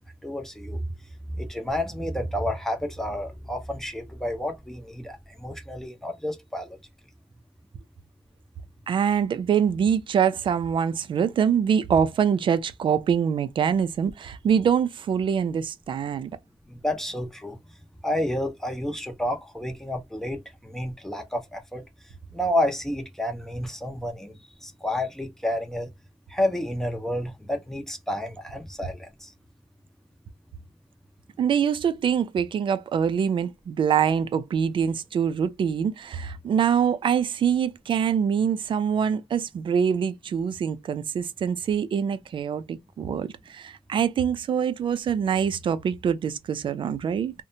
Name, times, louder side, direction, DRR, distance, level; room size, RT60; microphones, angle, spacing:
voice 1, 0.2-0.8 1.3-6.8 16.7-17.6 18.0-21.8 22.3-24.3 24.6-25.9 26.3-29.3, left 1 dB, 5° left, 0.6 m, -30 dB
voice 2, 8.9-16.4 31.4-47.3, right 7 dB, 45° right, 0.3 m, -24 dB
2.7 x 2.1 x 2.6 m
cardioid pair, 130°, 12 cm